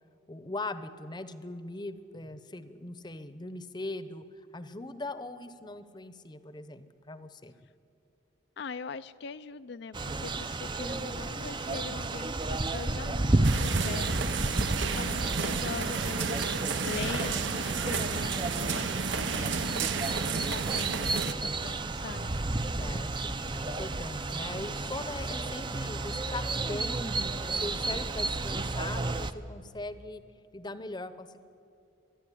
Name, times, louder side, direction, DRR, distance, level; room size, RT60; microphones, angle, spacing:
voice 1, 0.3-4.2 4.5-7.5 22.8-27.0 27.5-30.2 30.5-31.4, left 2 dB, 25° left, 13 dB, 0.8 m, -40 dB
voice 2, 8.6-22.4, left 5 dB, 60° left, 12 dB, 0.4 m, -42 dB
sound 1, 9.9-29.3, right 2 dB, 25° right, 0.6 m, -32 dB
sound 2, 13.4-21.3, right 5 dB, 70° right, 0.8 m, -32 dB
24.5 x 10.5 x 9.9 m, 2.6 s
head